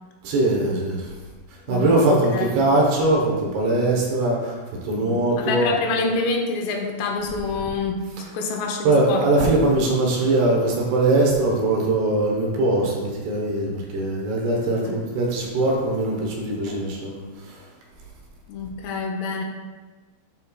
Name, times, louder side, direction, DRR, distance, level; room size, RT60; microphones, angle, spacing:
voice 1, 0.2-1.1 1.7-4.6 4.8-5.7 8.8-17.2, right 2 dB, 75° right, -1 dB, 2.9 m, -21 dB
voice 2, 1.7-2.5 5.0-9.5 14.8-15.0 18.5-19.4, left 4 dB, 85° left, 2 dB, 2.9 m, -27 dB
11.0 x 4.3 x 2.3 m, 1.4 s
omnidirectional pair, 4.8 m